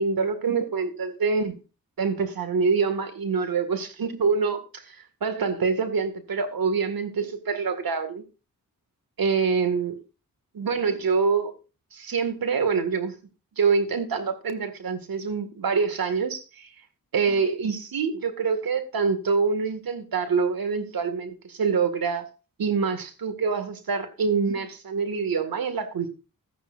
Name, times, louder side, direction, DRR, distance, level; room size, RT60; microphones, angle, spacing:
voice 1, 0.0-1.6 2.0-8.2 9.2-10.0 10.5-11.5 11.9-13.1 13.6-16.7 17.1-22.3 22.6-26.1, right 5 dB, 80° right, 2.0 m, -25 dB
13.5 x 10.0 x 2.5 m
cardioid pair, 60°, 35 cm